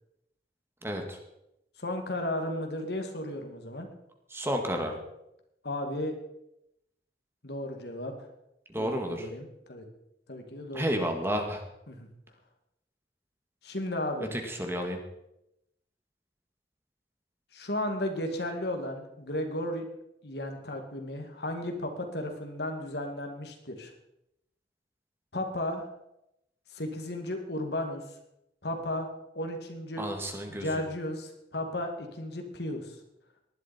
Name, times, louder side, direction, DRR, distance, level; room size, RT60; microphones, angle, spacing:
voice 1, 0.8-1.2 4.3-5.0 8.7-9.3 10.7-11.6 14.3-15.0 30.0-30.7, equal, 15° right, 3 dB, 1.9 m, -31 dB
voice 2, 1.8-3.9 5.6-6.2 7.4-8.1 8.8-9.9 10.3-10.8 11.9-12.1 13.6-14.3 17.5-19.8 20.2-23.9 25.3-25.9 26.7-28.0 28.6-29.1 29.3-30.0 30.5-33.0, left 1 dB, 65° left, 4 dB, 2.3 m, -34 dB
19.0 x 12.0 x 4.4 m, 0.84 s
head